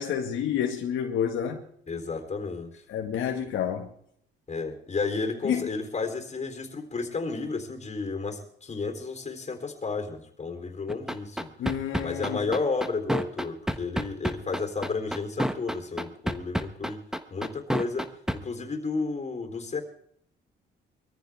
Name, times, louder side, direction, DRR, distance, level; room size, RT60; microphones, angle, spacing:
voice 1, 0.0-1.6 2.9-3.9 5.4-5.6 11.6-12.5, left 8 dB, 85° left, 1.8 m, -29 dB
voice 2, 1.9-2.7 4.5-11.5 12.0-17.0 17.3-19.8, left 4 dB, 35° left, 3.7 m, -32 dB
sound 1, 10.9-18.4, equal, 5° right, 1.2 m, -28 dB
22.0 x 14.5 x 3.6 m
cardioid pair, 90°, 20 cm